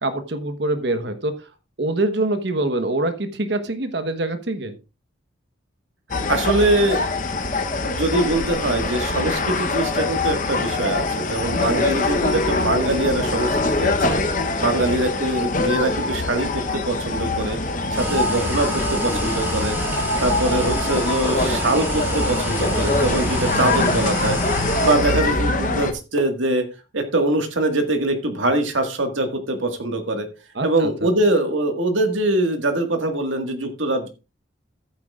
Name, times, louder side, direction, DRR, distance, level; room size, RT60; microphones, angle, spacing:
voice 1, 0.0-1.3 1.8-4.8 11.6-12.1 14.6-14.7 23.6-23.7 30.5-31.1, right 2 dB, 60° right, 8 dB, 1.2 m, -25 dB
sound 1, 6.1-25.9, left 2 dB, 40° left, 0.9 m, -23 dB
voice 2, 6.3-7.3 7.8-14.2 14.6-17.6 17.9-19.8 20.2-24.4 24.8-26.6 26.9-30.3 30.6-34.1, right 2 dB, 80° right, 5 dB, 1.8 m, -23 dB
sound 2, 17.9-25.0, right 1 dB, 10° right, 2.6 m, -29 dB
14.0 x 8.7 x 2.5 m, 0.29 s
head